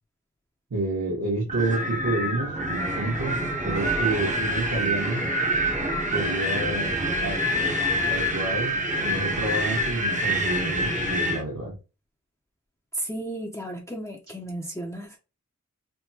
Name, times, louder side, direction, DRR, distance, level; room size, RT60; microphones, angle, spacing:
voice 1, 0.7-3.4 3.6-5.2 6.1-7.4 8.1-11.7, right 2 dB, 65° right, -6 dB, 1.2 m, -29 dB
Wind, 1.5-11.4, equal, 25° right, 0.7 m, -26 dB
voice 2, 12.9-15.2, right 1 dB, 10° left, 0 dB, 0.6 m, -34 dB
3.4 x 2.1 x 2.8 m, 0.30 s
wide cardioid pair, 60°, 31 cm